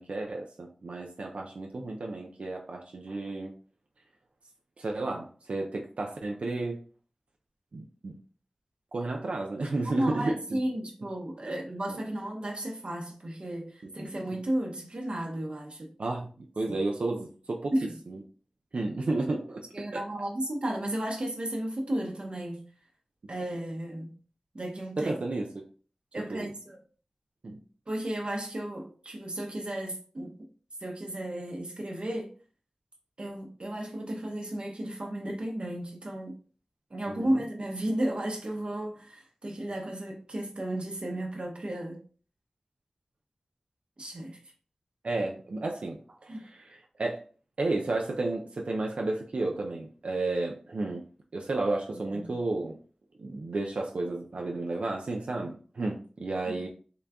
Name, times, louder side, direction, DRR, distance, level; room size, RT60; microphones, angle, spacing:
voice 1, 0.0-3.5 4.8-6.8 7.7-8.2 8.9-10.6 11.9-12.0 16.0-17.7 18.1-18.2 18.7-19.6 19.9-20.0 25.0-25.6 26.3-26.5 27.4-27.6 37.2-37.4 45.0-47.2 47.6-51.0 51.3-52.7 53.2-56.7, right 2 dB, 80° right, 0.5 m, -32 dB
voice 2, 9.9-15.9 16.7-16.8 17.7-17.9 19.7-22.6 23.3-24.1 24.5-25.1 26.1-26.8 27.9-30.5 30.8-32.3 33.2-36.4 36.9-42.0 44.0-44.4 46.3-46.4 51.9-52.3 56.5-56.6, right 1 dB, 60° right, 0.8 m, -34 dB
3.8 x 2.3 x 3.4 m
wide cardioid pair, 45°, 2 cm